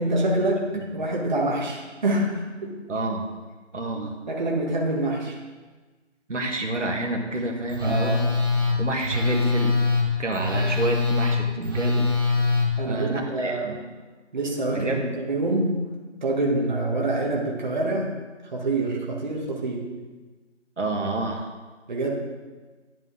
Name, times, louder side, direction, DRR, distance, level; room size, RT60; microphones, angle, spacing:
voice 1, 0.0-2.7 4.3-5.4 7.8-8.4 10.5-10.6 12.8-13.8 14.3-18.2 18.5-19.9 21.9-22.2, right 2 dB, 40° right, -2 dB, 1.3 m, -26 dB
voice 2, 0.7-1.1 2.9-3.3 3.7-4.1 6.3-8.2 8.8-9.8 10.2-12.1 12.9-13.8 14.7-15.2 20.8-21.5, right 2 dB, 85° right, 1 dB, 1.8 m, -28 dB
Telephone, 7.7-12.7, left 3 dB, 20° right, 1.0 m, -23 dB
10.5 x 7.8 x 3.8 m, 1.3 s
figure-of-eight pair, 170°, 36 cm